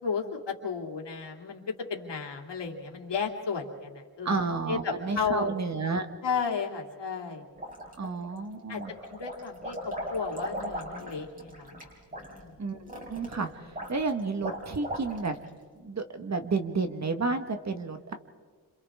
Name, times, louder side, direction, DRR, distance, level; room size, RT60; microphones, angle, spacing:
voice 1, 0.0-4.3 4.7-5.5 6.2-7.4 8.7-8.8 9.1-11.8 12.1-12.5, left 5 dB, 80° left, 2 dB, 2.9 m, -33 dB
voice 2, 4.2-6.1 8.0-8.9 12.6-15.3 15.8-18.1, right 4 dB, 40° right, 7 dB, 1.5 m, -31 dB
sound 1, 7.6-8.4 8.7-15.5, equal, 20° right, 5.0 m, -38 dB
30.0 x 27.0 x 3.6 m, 1.5 s
wide cardioid pair, 150°, 42 cm